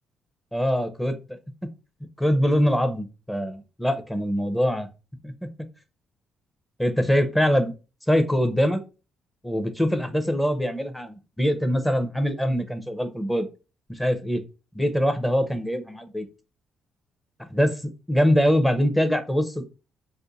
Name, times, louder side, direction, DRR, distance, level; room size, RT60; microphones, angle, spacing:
voice 1, 0.5-1.1 2.2-4.9 5.2-5.3 6.8-7.7 8.1-8.8 9.4-13.5 13.9-14.4 14.7-16.3 17.5-17.8 18.1-19.7, equal, 5° left, 8 dB, 0.7 m, -23 dB
2.5 x 2.5 x 3.9 m, 0.31 s
cardioid pair, 90°, 0 cm